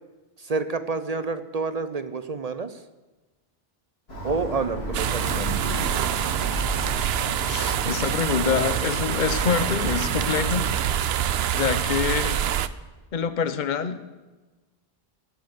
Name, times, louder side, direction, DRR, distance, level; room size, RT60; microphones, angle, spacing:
voice 1, 0.4-2.8 4.2-5.6, right 4 dB, 45° right, 11 dB, 0.7 m, -28 dB
Alarm, 4.1-10.9, right 1 dB, 75° left, 4.2 m, -33 dB
sound 1, 4.9-12.7, right 10 dB, 75° right, 0.8 m, -26 dB
voice 2, 7.4-10.7 11.5-12.4 13.1-14.0, left 7 dB, 50° left, 11 dB, 0.9 m, -26 dB
18.0 x 7.1 x 7.8 m, 1.2 s
omnidirectional pair, 1.1 m